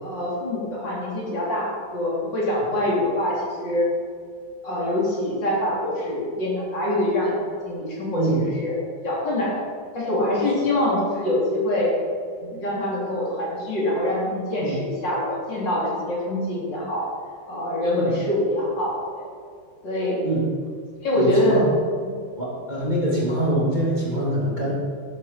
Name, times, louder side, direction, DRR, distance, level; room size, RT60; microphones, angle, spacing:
voice 1, 0.0-3.9 4.6-9.6 9.9-11.9 12.4-17.1 17.5-19.3 19.8-20.2 21.0-21.6 22.0-22.2, left 1 dB, 60° left, -5 dB, 3.9 m, -25 dB
voice 2, 8.1-8.5 14.6-14.7 17.9-18.2 20.2-20.4 21.1-21.7 22.4-24.7, right 1 dB, 20° right, -6 dB, 2.8 m, -24 dB
12.0 x 11.0 x 4.4 m, 2.2 s
omnidirectional pair, 2.2 m